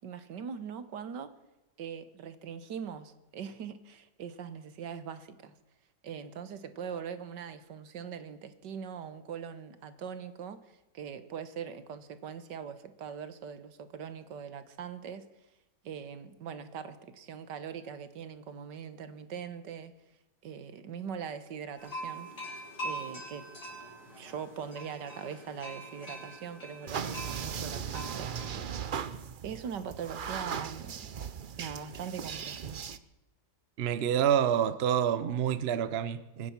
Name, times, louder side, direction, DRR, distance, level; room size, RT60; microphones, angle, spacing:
voice 1, 0.0-1.3 1.8-5.5 6.0-10.6 10.9-15.3 15.8-19.9 20.4-22.3 22.8-23.5 24.2-29.1 29.4-31.1 31.6-32.6, right 7 dB, 90° right, 12 dB, 1.8 m, -41 dB
sound 1, 21.8-28.5, right 1 dB, 65° left, 6.6 m, -43 dB
sound 2, 26.9-33.0, right 7 dB, 65° right, 0.5 m, -38 dB
voice 2, 33.8-36.5, right 9 dB, 45° right, 14 dB, 0.9 m, -28 dB
24.0 x 9.7 x 6.0 m, 1.0 s
omnidirectional pair, 1.8 m